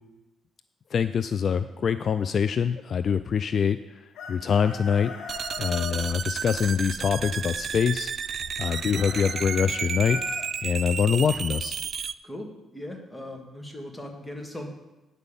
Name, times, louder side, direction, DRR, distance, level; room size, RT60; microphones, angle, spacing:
voice 1, 0.9-5.1 5.6-10.2 10.6-11.8, left 7 dB, 50° left, 12 dB, 0.3 m, -25 dB
Chicken rooster, 4.1-6.0 8.7-10.4, left 5 dB, 80° left, 1.5 m, -38 dB
sound 1, 5.3-12.1, right 7 dB, 50° right, 0.3 m, -32 dB
voice 2, 12.2-14.7, left 1 dB, 10° left, 2 dB, 1.9 m, -39 dB
9.1 x 5.5 x 6.9 m, 1.0 s
cardioid pair, 90°, 0 cm